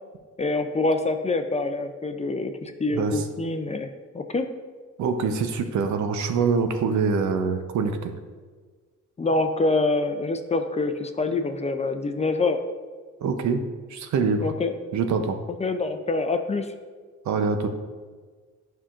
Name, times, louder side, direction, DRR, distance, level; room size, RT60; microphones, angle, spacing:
voice 1, 0.4-4.5 9.2-12.6 14.4-14.7 15.6-16.7, left 3 dB, 20° left, 7 dB, 0.5 m, -26 dB
voice 2, 2.9-3.2 5.0-8.1 13.2-13.6 13.9-14.5 14.9-15.4 17.2-17.7, right 5 dB, 70° right, 7 dB, 0.7 m, -24 dB
9.7 x 5.6 x 2.5 m, 1.5 s
cardioid pair, 90°, 30 cm